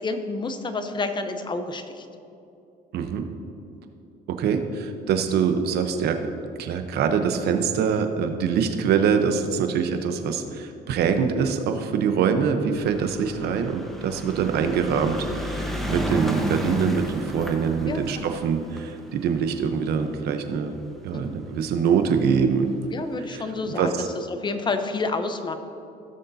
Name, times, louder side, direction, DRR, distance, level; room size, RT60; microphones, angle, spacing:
voice 1, 0.0-2.1 17.9-18.4 21.1-21.4 22.9-25.6, left 3 dB, 25° left, 8 dB, 0.8 m, -29 dB
voice 2, 2.9-3.2 4.3-6.2 6.6-20.8 21.0-22.7 23.3-23.4 23.8-24.1, right 6 dB, 70° right, 7 dB, 0.9 m, -24 dB
sound 1, 12.7-21.2 22.0-22.1 22.3-22.4 22.7-22.8, equal, ahead, 1.1 m, -32 dB
16.5 x 6.6 x 2.7 m, 2.7 s
cardioid pair, 110°, 17 cm